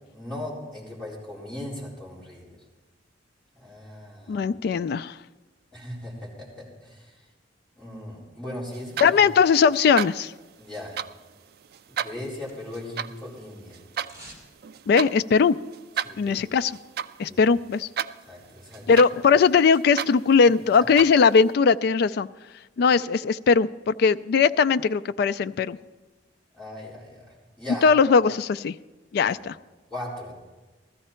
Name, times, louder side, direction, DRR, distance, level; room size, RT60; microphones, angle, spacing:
voice 1, 0.1-2.5 3.6-4.5 5.7-7.2 7.8-9.2 10.6-11.0 11.9-13.8 16.0-16.4 17.3-17.4 18.2-18.9 26.5-27.9 29.2-29.4 29.9-30.3, left 1 dB, 5° left, -8 dB, 4.3 m, -38 dB
voice 2, 4.3-5.1 9.0-10.3 14.9-15.6 16.2-16.7 17.2-17.9 18.9-22.3 22.8-25.8 27.8-28.8 29.1-29.5, left 5 dB, 55° left, 13 dB, 0.3 m, -19 dB
sound 1, 8.7-21.5, right 8 dB, 55° right, 0.4 m, -36 dB
sound 2, 11.7-13.0 13.2-14.5 14.8-14.9, right 1 dB, 20° right, 2.8 m, -50 dB
15.5 x 13.5 x 4.4 m, 1.2 s
head